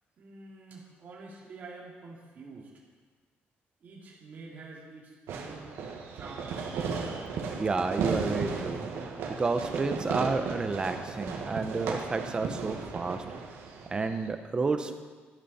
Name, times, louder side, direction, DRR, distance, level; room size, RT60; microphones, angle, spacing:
voice 1, 0.2-2.7 3.8-5.7 6.1-6.8, right 3 dB, 40° right, -4 dB, 2.5 m, -47 dB
Fireworks, 5.3-14.3, right 5 dB, 80° right, 1.6 m, -35 dB
voice 2, 7.6-8.9 9.3-13.2 13.9-15.0, right 3 dB, 20° right, 8 dB, 0.7 m, -30 dB
12.5 x 11.5 x 4.2 m, 1.5 s
cardioid pair, 160°, 4 cm